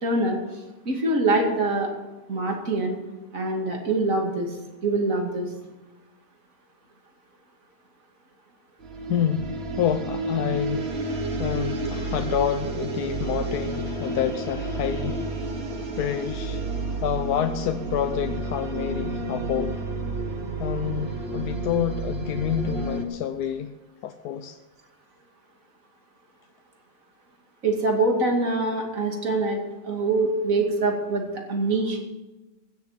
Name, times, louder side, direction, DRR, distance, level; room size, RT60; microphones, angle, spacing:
voice 1, 0.0-0.4 0.9-1.9 2.3-3.0 3.3-4.5 4.8-5.5 27.6-31.2 31.5-32.0, right 2 dB, 60° right, 1 dB, 2.8 m, -24 dB
sound 1, 8.8-23.0, right 3 dB, 45° right, 1.6 m, -30 dB
voice 2, 9.1-10.9 11.4-15.5 16.0-16.6 17.0-19.8 20.6-23.7 24.0-24.6, left 9 dB, 85° left, 8 dB, 1.2 m, -28 dB
15.5 x 7.6 x 7.4 m, 1.1 s
omnidirectional pair, 1.6 m